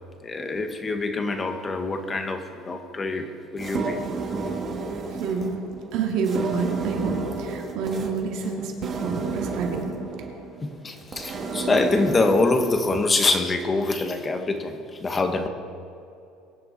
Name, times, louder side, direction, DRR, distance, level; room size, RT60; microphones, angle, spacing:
voice 1, 0.2-4.0 10.6-15.5, left 3 dB, 20° left, 6 dB, 1.4 m, -25 dB
sound 1, 3.6-13.0, right 4 dB, 30° right, 2.1 m, -32 dB
voice 2, 5.1-5.6 5.9-9.9, right 5 dB, 60° right, 1 dB, 2.5 m, -28 dB
23.0 x 10.5 x 4.3 m, 2.6 s
cardioid pair, 140°, 0 cm